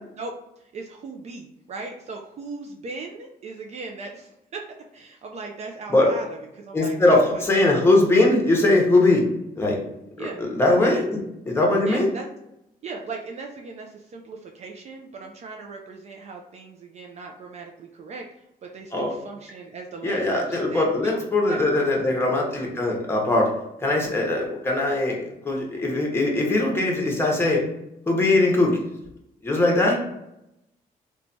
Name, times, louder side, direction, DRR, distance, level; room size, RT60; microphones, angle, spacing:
voice 1, 0.6-4.6 4.9-7.4 10.2-10.4 10.7-11.0 11.9-12.2 12.8-18.3 18.6-21.2 21.5-21.9, right 4 dB, 45° right, 2 dB, 0.4 m, -38 dB
voice 2, 6.7-9.3 9.6-9.8 10.2-10.3 10.5-11.2 11.5-12.1 18.9-19.1 20.0-23.5 23.8-27.6 28.1-28.8 29.4-30.0, left 2 dB, 15° left, -1 dB, 0.8 m, -20 dB
3.0 x 2.2 x 2.6 m, 0.84 s
cardioid pair, 130°, 16 cm